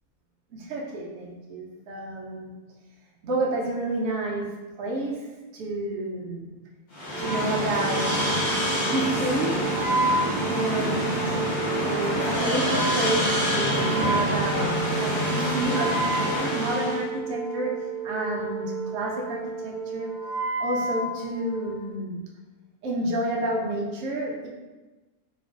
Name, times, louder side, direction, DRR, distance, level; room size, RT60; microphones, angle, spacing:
voice 1, 0.5-2.5 3.2-4.5 4.8-5.3 5.5-6.5 7.2-8.3 8.8-9.6 10.5-11.5 11.8-14.7 15.0-20.1 20.6-22.2 22.8-24.5, right 1 dB, 65° right, -2 dB, 0.8 m, -30 dB
sound 1, 6.9-17.0, equal, 45° left, 0.6 m, -26 dB
Wind instrument woodwind instrument, 7.1-21.8, right 3 dB, 40° right, 0.8 m, -31 dB
2.9 x 2.5 x 2.3 m, 1.2 s
omnidirectional pair, 1.5 m